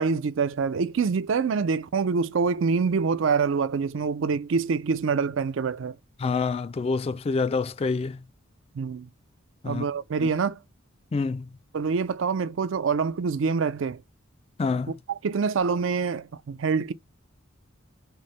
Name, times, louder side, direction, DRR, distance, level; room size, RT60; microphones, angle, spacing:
voice 1, 0.0-6.0 8.7-9.1 9.6-10.6 11.7-14.0 15.1-16.9, right 5 dB, 70° right, 0.4 m, -25 dB
voice 2, 6.2-8.2 9.6-9.8 10.2-10.3 11.1-11.5 14.6-14.9, left 4 dB, 30° left, 0.3 m, -27 dB
4.6 x 2.1 x 3.1 m
head